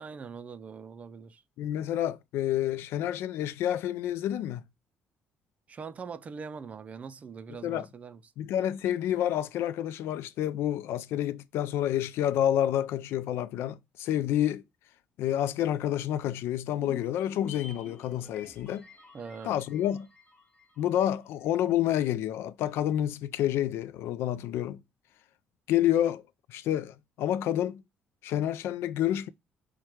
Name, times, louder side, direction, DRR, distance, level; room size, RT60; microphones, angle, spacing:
voice 1, 0.0-1.4 5.7-8.2 19.1-19.5, right 5 dB, 35° right, 0.4 m, -42 dB
voice 2, 1.6-4.6 7.6-7.9 8.4-14.6 15.2-18.9 19.4-20.1 20.8-24.8 25.7-26.2 26.5-27.8 28.2-29.3, left 11 dB, 75° left, 0.3 m, -29 dB
sound 1, 16.7-21.2 21.5-21.6, left 3 dB, 20° left, 0.9 m, -50 dB
4.7 x 2.2 x 4.3 m
cardioid pair, 115°, 4 cm